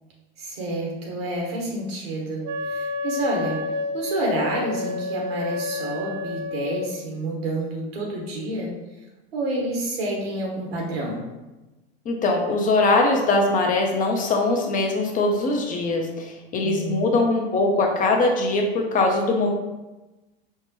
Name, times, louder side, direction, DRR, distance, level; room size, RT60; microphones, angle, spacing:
voice 1, 0.4-3.6 3.9-8.7 9.3-11.2 16.6-17.2, right 1 dB, 75° right, -2 dB, 1.3 m, -29 dB
Wind instrument woodwind instrument, 2.4-6.9, left 3 dB, 40° right, 0.5 m, -30 dB
voice 2, 12.1-19.5, left 2 dB, 25° left, 2 dB, 0.5 m, -21 dB
4.4 x 2.1 x 2.9 m, 1.1 s
hypercardioid pair, 95°, 31 cm